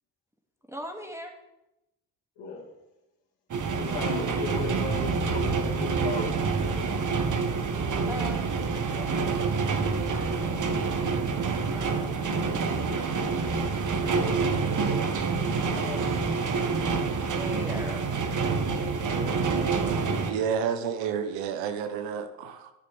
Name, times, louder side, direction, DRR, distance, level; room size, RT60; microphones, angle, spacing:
voice 1, 0.6-1.4 8.1-12.2 15.3-16.2 17.2-18.4, equal, 5° right, 3 dB, 2.0 m, -43 dB
sound 1, 3.5-20.3, right 4 dB, 40° right, 1.4 m, -27 dB
voice 2, 3.8-6.3 19.0-19.7, left 5 dB, 65° left, -1 dB, 2.6 m, -36 dB
voice 3, 20.3-22.7, right 7 dB, 70° right, 9 dB, 1.1 m, -30 dB
11.0 x 10.0 x 3.4 m, 0.93 s
hypercardioid pair, 50°, 47 cm